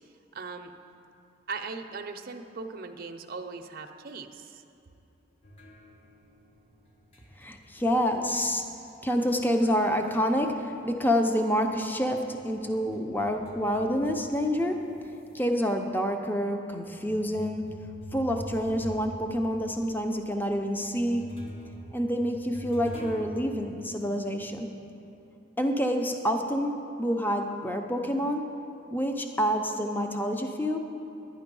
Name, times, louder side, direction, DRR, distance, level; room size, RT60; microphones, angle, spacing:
voice 1, 0.3-0.7 1.5-4.6, right 4 dB, 50° right, 4 dB, 0.6 m, -39 dB
sound 1, 5.4-10.4 10.7-15.4 16.0-16.1 16.9-23.3, equal, 30° left, 1.0 m, -46 dB
voice 2, 7.4-8.6 9.0-14.8 15.3-17.7 18.1-21.2 21.9-24.7 25.6-28.5 28.9-30.8, equal, 10° left, 4 dB, 0.6 m, -27 dB
11.5 x 9.8 x 5.4 m, 2.9 s
head